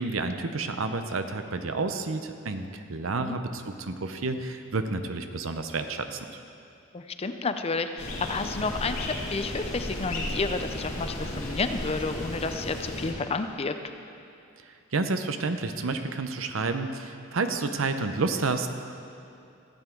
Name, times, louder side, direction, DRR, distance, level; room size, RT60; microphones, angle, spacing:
voice 1, 0.0-6.2 14.9-18.7, right 3 dB, 80° right, 8 dB, 0.7 m, -30 dB
voice 2, 6.9-13.7, left 4 dB, 30° left, 8 dB, 0.5 m, -31 dB
sound 1, 8.0-13.1, left 1 dB, 90° left, 2.5 m, -34 dB
14.5 x 9.1 x 4.6 m, 2.6 s
head